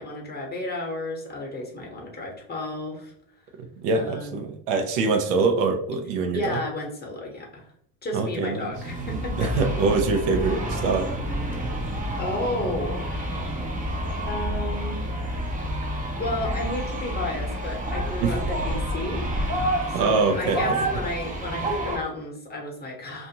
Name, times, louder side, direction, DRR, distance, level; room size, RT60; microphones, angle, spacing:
voice 1, 0.0-3.1 3.9-4.5 6.3-7.6 8.0-9.5 12.2-13.5 14.3-15.0 15.9-19.3 19.9-23.3, left 1 dB, 20° left, 1 dB, 0.9 m, -32 dB
voice 2, 3.8-6.6 8.1-8.7 9.4-11.1 18.2-18.3 19.9-20.7 21.6-21.7, right 4 dB, 75° right, 5 dB, 0.7 m, -24 dB
sound 1, 8.7-22.0, right 1 dB, 15° right, 0.7 m, -29 dB
2.5 x 2.5 x 2.8 m, 0.69 s
hypercardioid pair, 70°, 49 cm